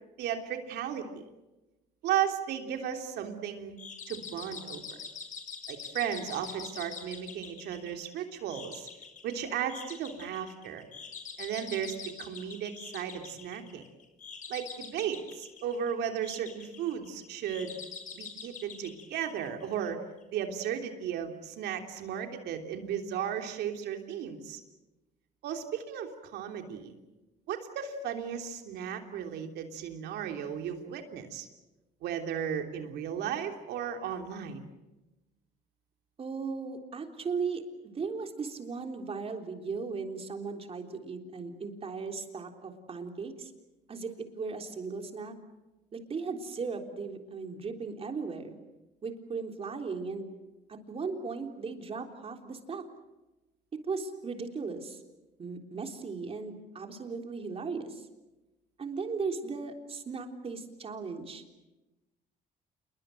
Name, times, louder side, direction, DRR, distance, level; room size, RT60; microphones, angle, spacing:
voice 1, 0.2-1.2 2.0-3.8 4.1-5.0 5.7-8.9 9.2-10.9 11.4-13.8 14.5-17.7 18.1-20.0 20.3-24.6 25.4-26.9 27.5-31.5 32.0-34.6, right 9 dB, 80° right, 4 dB, 3.2 m, -35 dB
sound 1, 3.8-19.9, left 6 dB, 50° left, 4.8 m, -45 dB
voice 2, 36.2-43.5 43.9-45.4 45.9-48.5 49.0-50.3 50.7-52.8 53.9-55.0 55.4-58.1 58.8-61.4, right 4 dB, 35° right, 4 dB, 3.6 m, -37 dB
28.0 x 22.0 x 7.8 m, 1.1 s
cardioid pair, 110°, 17 cm